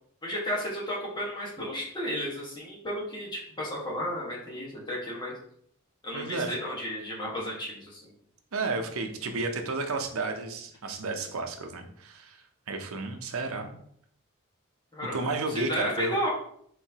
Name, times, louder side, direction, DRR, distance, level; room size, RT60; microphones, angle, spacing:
voice 1, 0.2-5.3 6.0-8.1 14.9-16.3, equal, 20° left, -4 dB, 1.4 m, -33 dB
voice 2, 6.1-6.5 8.5-13.7 15.1-16.2, right 3 dB, 75° right, 5 dB, 0.7 m, -32 dB
4.6 x 4.0 x 2.8 m, 0.66 s
head